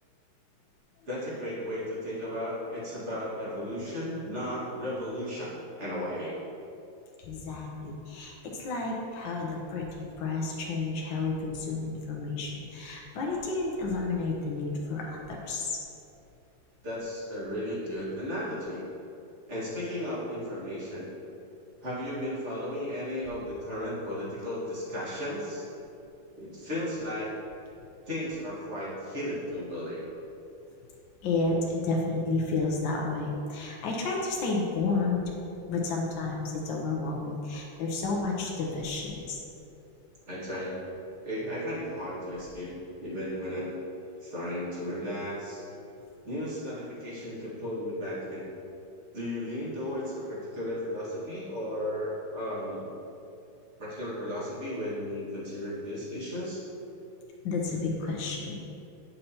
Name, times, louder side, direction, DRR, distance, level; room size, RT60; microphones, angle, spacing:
voice 1, 1.1-6.4 16.8-18.8 19.5-21.1 21.8-25.7 26.4-27.3 28.1-30.1 40.3-40.8 41.2-43.8 44.2-45.6 46.2-48.5 49.1-52.9 53.8-56.6, left 1 dB, 35° right, -8 dB, 1.9 m, -35 dB
voice 2, 7.2-15.8 31.2-35.3 35.6-39.4 57.4-58.7, left 3 dB, 75° left, -1 dB, 1.5 m, -31 dB
9.2 x 5.4 x 2.8 m, 2.7 s
omnidirectional pair, 2.1 m